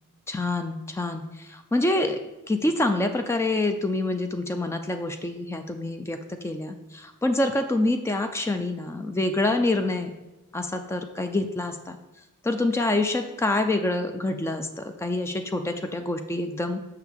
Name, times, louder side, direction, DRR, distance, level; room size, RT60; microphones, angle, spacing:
voice 1, 0.3-2.2 2.5-10.1 10.5-12.0 12.4-16.8, left 2 dB, 10° left, 7 dB, 0.3 m, -26 dB
6.3 x 5.7 x 3.5 m, 1.0 s
head